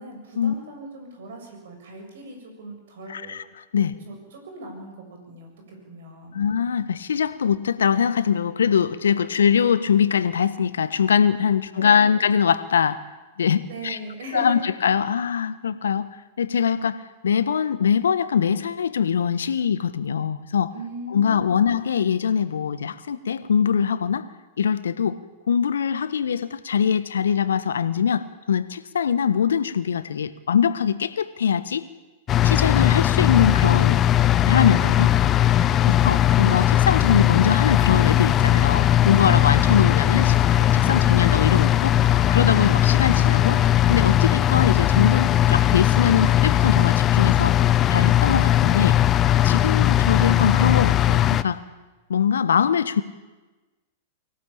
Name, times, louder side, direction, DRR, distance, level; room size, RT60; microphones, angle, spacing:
voice 1, 0.0-3.4 4.1-6.4 11.8-12.2 13.7-14.6 20.7-21.7 35.7-36.0 39.6-40.1 40.8-41.2, right 2 dB, 65° right, 4 dB, 7.3 m, -39 dB
voice 2, 3.1-3.4 3.7-3.9 6.3-13.0 13.4-14.0 14.3-16.1 16.4-20.7 21.1-24.2 24.6-25.2 25.5-31.9 32.4-34.0 34.5-35.2 35.8-40.3 40.7-43.6 43.9-47.6 47.9-49.0 49.4-51.6 52.1-53.0, left 7 dB, 75° left, 14 dB, 1.3 m, -22 dB
sound 1, 32.3-51.4, left 12 dB, 30° left, 0.9 m, -19 dB
24.0 x 16.5 x 8.8 m, 1.2 s
figure-of-eight pair, 100°, 0 cm